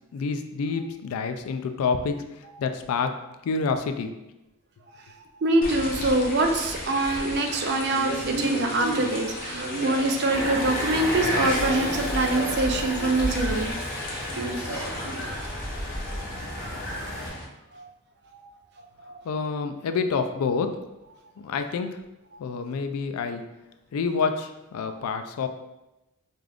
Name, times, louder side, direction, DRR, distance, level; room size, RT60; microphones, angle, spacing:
voice 1, 0.1-2.2 2.6-3.2 3.4-4.2 19.2-20.8 21.4-22.0 22.4-23.4 23.9-25.5, left 5 dB, 80° left, 8 dB, 0.3 m, -28 dB
voice 2, 5.4-13.7 17.7-17.9 18.3-18.5 19.0-19.1, right 2 dB, 50° right, 3 dB, 0.4 m, -24 dB
sound 1, 5.6-17.4, left 1 dB, 40° left, 0.6 m, -36 dB
Male speech man speaking, 7.9-10.9 11.1-15.3, right 2 dB, 90° right, 0.7 m, -34 dB
sound 2, 10.3-17.3, left 1 dB, 10° left, 1.0 m, -31 dB
4.9 x 2.4 x 2.4 m, 0.96 s
head